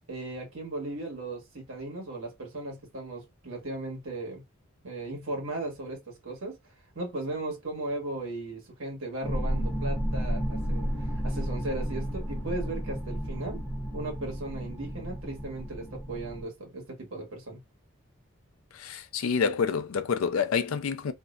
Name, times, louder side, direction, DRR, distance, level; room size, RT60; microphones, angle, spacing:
voice 1, 0.1-4.4 4.8-6.6 6.9-13.6 13.9-17.6, right 2 dB, 75° right, 1.2 m, -37 dB
sound 1, 9.2-16.4, equal, 10° left, 0.7 m, -32 dB
voice 2, 18.7-21.1, left 6 dB, 90° left, 0.4 m, -28 dB
2.5 x 2.1 x 2.3 m
head